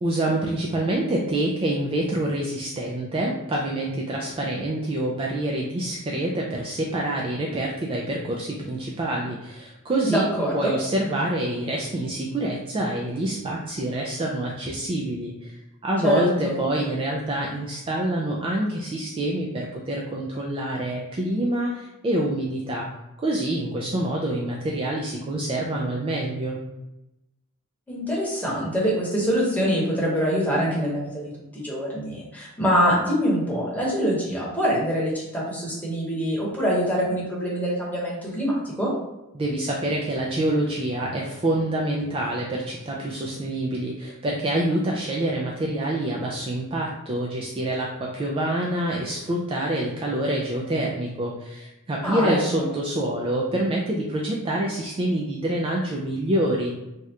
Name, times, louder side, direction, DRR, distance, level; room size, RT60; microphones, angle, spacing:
voice 1, 0.0-10.3 10.5-15.5 15.8-22.9 23.2-26.6 39.3-56.7, right 1 dB, 25° right, -2 dB, 0.3 m, -26 dB
voice 2, 10.1-10.7 16.0-16.5 27.9-38.9 52.0-52.7, equal, 5° left, -6 dB, 0.9 m, -24 dB
2.8 x 2.4 x 3.2 m, 0.94 s
head